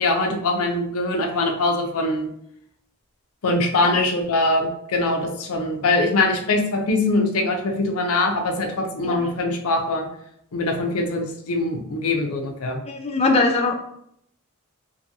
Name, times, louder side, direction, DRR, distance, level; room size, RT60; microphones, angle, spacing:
voice 1, 0.0-2.3 3.4-10.1 10.5-12.8, left 2 dB, 90° left, 3 dB, 0.5 m, -22 dB
voice 2, 12.9-13.7, left 3 dB, 30° left, 3 dB, 0.3 m, -21 dB
2.6 x 2.6 x 2.7 m, 0.73 s
head